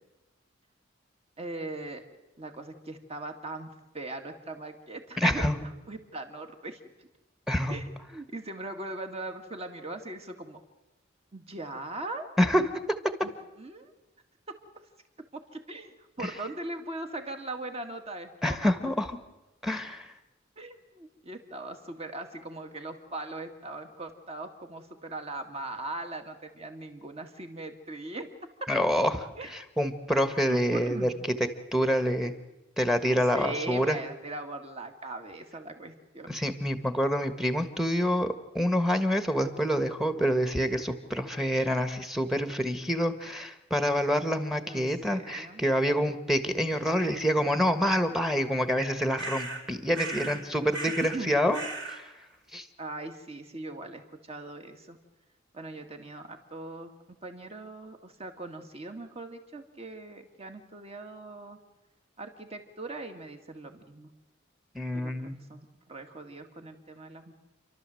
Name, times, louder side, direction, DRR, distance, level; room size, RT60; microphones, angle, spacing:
voice 1, 1.4-2.0 2.4-7.1 7.7-10.6 11.3-12.3 13.2-13.3 13.6-13.9 14.5-14.6 15.3-18.7 20.6-28.3 29.4-29.5 30.5-31.2 33.1-36.4 44.7-45.6 50.1-50.4 51.1-51.3 52.8-55.0 55.5-56.9 57.2-61.6 62.2-64.1 64.9-67.3, right 2 dB, 30° right, 5 dB, 2.0 m, -40 dB
voice 2, 5.2-5.6 7.5-7.8 12.4-12.6 18.4-19.2 19.6-20.1 28.7-31.1 31.7-32.3 32.8-34.0 36.3-51.6 51.9-52.0 52.5-52.7 64.7-65.3, equal, ahead, 9 dB, 1.4 m, -27 dB
sound 1, 49.2-49.6 49.9-50.4 50.7-51.2 51.5-52.0, right 2 dB, 70° right, 4.5 m, -36 dB
30.0 x 12.5 x 7.7 m, 1.0 s
head